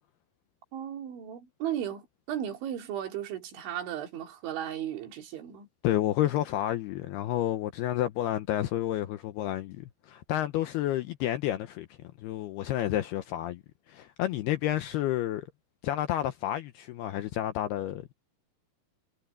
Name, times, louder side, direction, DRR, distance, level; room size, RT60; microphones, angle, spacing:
voice 1, 0.7-5.7, right 10 dB, 75° right, 5.2 m, -35 dB
voice 2, 5.8-11.9 12.2-15.5 15.8-18.1, left 13 dB, 80° left, 2.4 m, -30 dB
omnidirectional pair, 5.4 m